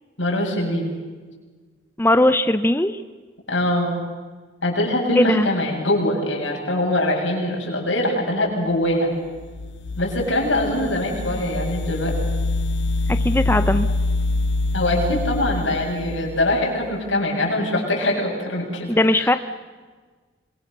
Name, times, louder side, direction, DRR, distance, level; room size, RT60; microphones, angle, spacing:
voice 1, 0.2-0.9 3.5-3.9 4.6-9.1 10.0-12.2 14.7-19.4, left 1 dB, 85° left, -1 dB, 7.6 m, -23 dB
voice 2, 2.0-3.0 5.2-5.5 13.1-13.9 18.9-19.4, left 1 dB, 10° left, 10 dB, 0.7 m, -18 dB
sound 1, 9.4-16.9, left 2 dB, 65° left, 0.6 m, -25 dB
26.5 x 22.5 x 6.8 m, 1.4 s
head